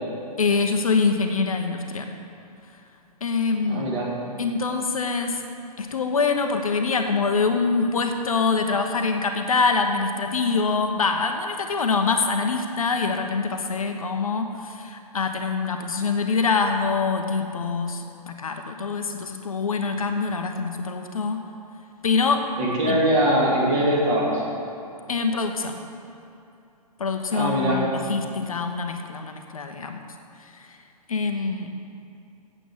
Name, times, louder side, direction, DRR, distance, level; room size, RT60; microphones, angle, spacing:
voice 1, 0.4-2.1 3.2-3.9 4.4-5.4 5.8-21.4 22.0-22.5 22.9-23.0 25.1-25.8 27.0-30.0 31.1-31.7, left 4 dB, 60° left, 5 dB, 0.9 m, -24 dB
voice 2, 3.7-4.1 22.6-24.4 27.3-27.8, right 1 dB, 30° right, -5 dB, 2.9 m, -22 dB
8.4 x 8.1 x 7.3 m, 2.7 s
figure-of-eight pair, 125°, 20 cm